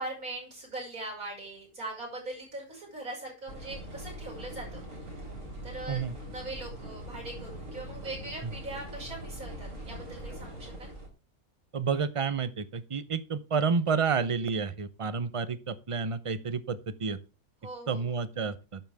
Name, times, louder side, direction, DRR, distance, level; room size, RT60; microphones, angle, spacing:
voice 1, 0.0-5.0 5.6-10.9 17.6-18.2, right 2 dB, 85° right, -3 dB, 6.3 m, -41 dB
sound 1, 3.5-11.1, right 1 dB, 65° right, 4.7 m, -42 dB
voice 2, 11.7-17.2 17.9-18.8, right 5 dB, 30° right, 14 dB, 0.7 m, -30 dB
12.0 x 9.0 x 3.5 m, 0.30 s
omnidirectional pair, 1.5 m